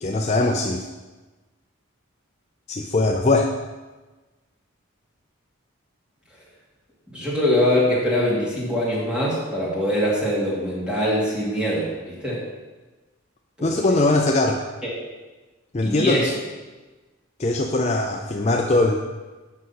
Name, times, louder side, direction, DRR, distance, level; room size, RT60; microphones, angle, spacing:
voice 1, 0.0-0.8 2.7-3.5 13.6-14.6 15.7-16.2 17.4-18.9, left 2 dB, 30° left, 2 dB, 0.5 m, -21 dB
voice 2, 7.1-12.4 13.6-14.1 14.8-14.9 15.8-16.3, left 1 dB, 5° right, -7 dB, 2.5 m, -23 dB
8.0 x 6.3 x 5.8 m, 1.2 s
head